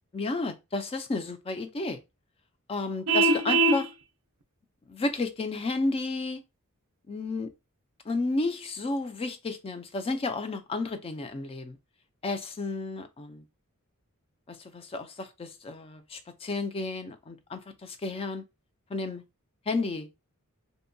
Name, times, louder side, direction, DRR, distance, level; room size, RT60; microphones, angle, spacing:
voice 1, 0.1-2.0 2.7-3.9 4.9-6.4 7.1-7.5 8.1-11.8 12.2-13.4 14.5-18.4 18.9-19.2 19.7-20.1, left 3 dB, 25° left, 0.3 m, -32 dB
Vehicle horn car horn honking, 3.1-3.8, right 2 dB, 70° right, 0.5 m, -22 dB
2.7 x 2.2 x 2.5 m
head